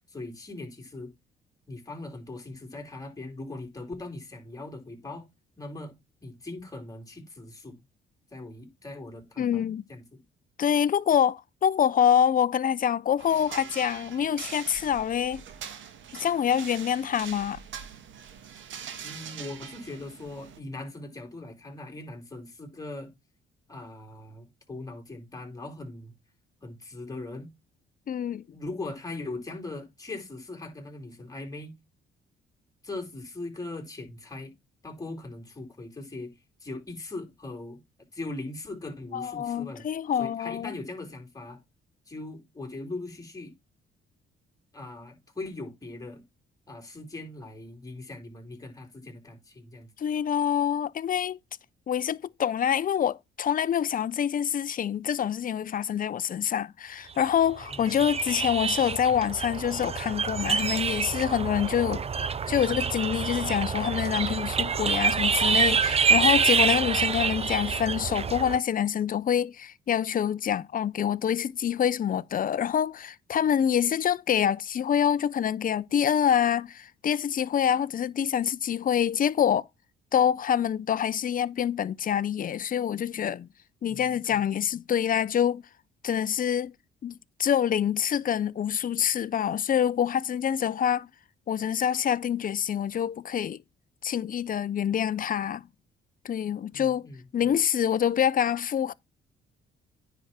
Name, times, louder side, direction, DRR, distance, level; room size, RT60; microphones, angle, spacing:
voice 1, 0.1-1.1 1.7-5.2 5.6-5.9 6.2-7.8 8.3-9.6 9.9-10.2 19.0-23.1 23.7-26.1 26.6-27.5 28.5-31.8 32.8-34.5 34.8-36.3 36.6-37.8 38.1-39.9 40.2-41.6 42.1-43.5 44.7-46.2 46.7-49.9 57.7-58.1 83.9-84.4 96.7-97.5, left 2 dB, 15° left, 4.3 m, -40 dB
voice 2, 9.4-9.8 10.6-15.4 16.1-17.6 28.1-28.4 39.1-40.7 50.0-51.4 51.9-62.0 62.5-79.7 80.1-83.5 83.8-85.6 86.0-86.7 87.0-91.1 91.5-93.6 94.0-95.7 96.2-97.1 97.3-98.9, left 9 dB, 45° left, 0.6 m, -26 dB
sound 1, 13.2-20.6, right 8 dB, 75° right, 1.7 m, -43 dB
sound 2, 57.5-68.6, right 6 dB, 30° right, 0.6 m, -27 dB
9.8 x 6.2 x 4.3 m
cardioid pair, 90°, 20 cm